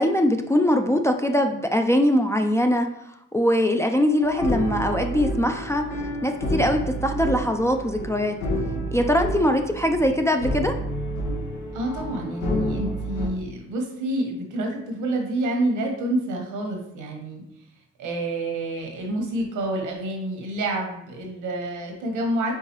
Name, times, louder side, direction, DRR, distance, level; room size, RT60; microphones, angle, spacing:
voice 1, 0.0-2.9 3.3-5.8 6.2-8.4 8.9-10.7, left 1 dB, 10° left, 4 dB, 0.3 m, -22 dB
sound 1, 4.2-13.3, equal, 90° left, 1.1 m, -29 dB
voice 2, 11.7-17.4 18.0-22.5, right 1 dB, 85° right, 2 dB, 1.1 m, -28 dB
4.7 x 3.6 x 2.9 m, 0.79 s
cardioid pair, 90°, 30 cm